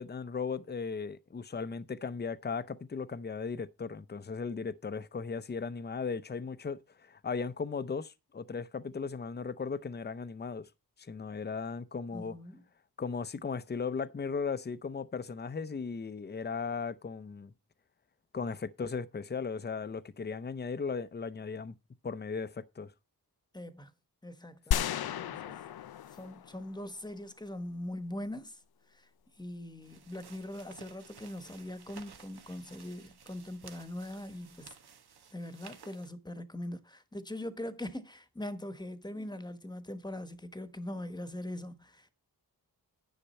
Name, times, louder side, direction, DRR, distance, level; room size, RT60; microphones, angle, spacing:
voice 1, 0.0-10.7 11.0-12.4 13.0-17.5 18.3-21.7 22.0-22.9, left 5 dB, 25° left, 0.6 m, -37 dB
voice 2, 12.1-12.6 23.5-23.9 24.2-25.6 26.1-28.6 28.9-29.1 29.4-34.8 35.3-42.1, left 1 dB, 10° left, 1.2 m, -42 dB
sound 1, 24.7-27.0, left 9 dB, 70° left, 0.5 m, -34 dB
sound 2, 29.8-36.1, right 7 dB, 80° right, 1.2 m, -55 dB
10.0 x 6.7 x 4.3 m
wide cardioid pair, 85°, 38 cm